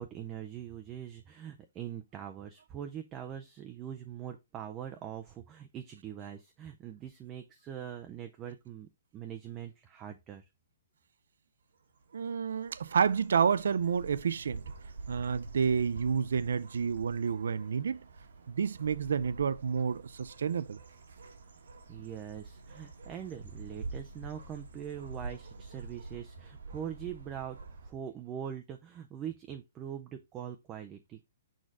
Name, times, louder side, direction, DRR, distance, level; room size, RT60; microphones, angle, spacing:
voice 1, 0.0-10.4 21.9-31.3, right 9 dB, 15° right, 0.4 m, -42 dB
sound 1, 11.8-27.9, right 3 dB, 90° right, 1.7 m, -47 dB
voice 2, 12.1-14.6 15.1-18.0 18.5-20.8, right 6 dB, 70° right, 0.5 m, -29 dB
6.4 x 3.8 x 4.7 m
hypercardioid pair, 180°, 0 cm